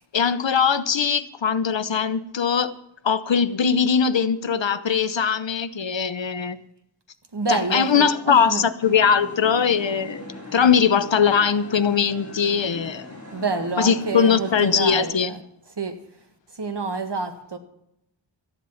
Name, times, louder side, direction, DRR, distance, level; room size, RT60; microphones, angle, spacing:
voice 1, 0.1-2.7 3.0-6.6 7.5-10.2 10.5-13.1 13.8-15.3, left 6 dB, 70° left, 0.9 m, -21 dB
voice 2, 7.3-8.6 13.3-15.3 15.8-15.9 16.6-17.6, right 3 dB, 60° right, 1.8 m, -27 dB
sound 1, 8.8-15.1, left 1 dB, 30° left, 5.3 m, -40 dB
14.0 x 11.0 x 5.7 m
wide cardioid pair, 70°, 46 cm